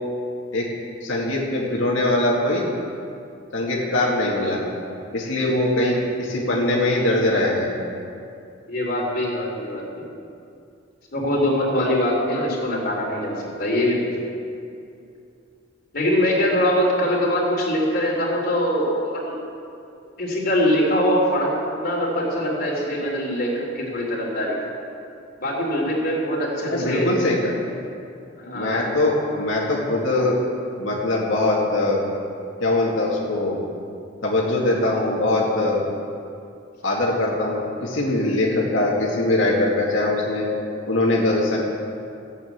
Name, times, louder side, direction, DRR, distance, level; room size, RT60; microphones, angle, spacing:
voice 1, 1.0-2.7 3.5-4.6 5.1-7.7 11.8-11.9 26.7-27.5 28.5-30.4 30.8-32.0 32.6-33.6 34.2-35.8 36.8-40.5 40.9-41.6, left 2 dB, 80° left, -4 dB, 2.2 m, -22 dB
voice 2, 8.7-10.1 11.1-14.1 15.9-19.3 20.2-21.5 21.8-24.6 25.4-27.1 28.4-28.9, equal, 50° left, -3 dB, 3.7 m, -23 dB
14.5 x 8.3 x 8.1 m, 2.5 s
head